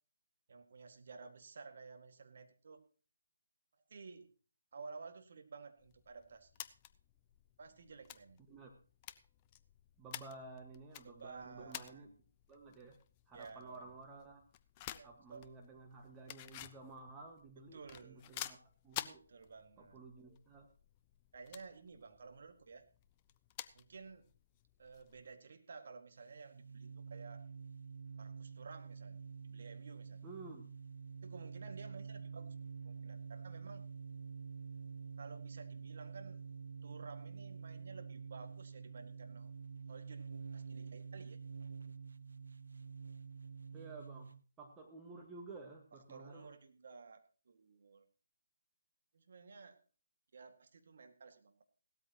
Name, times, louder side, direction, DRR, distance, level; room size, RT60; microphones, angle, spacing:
voice 1, 0.5-2.8 3.9-4.3 4.7-6.5 7.6-8.4 11.0-12.2 13.3-13.9 14.9-15.4 17.6-18.4 19.3-20.0 21.3-22.8 23.7-24.3 24.8-27.4 28.2-29.2 29.4-30.2 31.2-32.6 32.8-33.8 35.2-36.4 36.8-39.5 39.9-41.4 45.9-48.1 49.1-49.8 50.3-51.6, right 4 dB, 55° right, 6 dB, 1.9 m, -54 dB
sound 1, 5.8-25.3, left 13 dB, 25° left, 0.5 m, -52 dB
voice 2, 10.0-12.1 12.5-13.0 13.3-14.4 15.0-18.6 18.8-19.2 19.8-20.7 30.2-30.7 43.7-46.5, right 3 dB, 15° right, 0 dB, 1.6 m, -53 dB
sound 2, 26.2-44.4, right 5 dB, 70° right, 0.6 m, -48 dB
17.0 x 13.0 x 3.0 m, 0.39 s
figure-of-eight pair, 155°, 0 cm